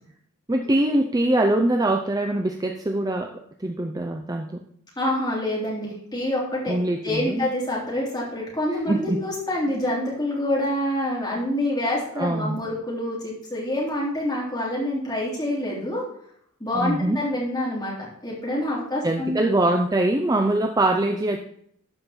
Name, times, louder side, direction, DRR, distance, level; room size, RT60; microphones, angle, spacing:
voice 1, 0.5-4.6 6.7-7.5 8.9-9.2 12.2-12.6 16.7-17.2 19.0-21.4, right 1 dB, 15° right, 4 dB, 0.5 m, -23 dB
voice 2, 5.0-6.8 7.0-16.0 16.6-19.6, left 1 dB, 20° left, -5 dB, 3.4 m, -27 dB
12.5 x 5.2 x 4.3 m, 0.66 s
head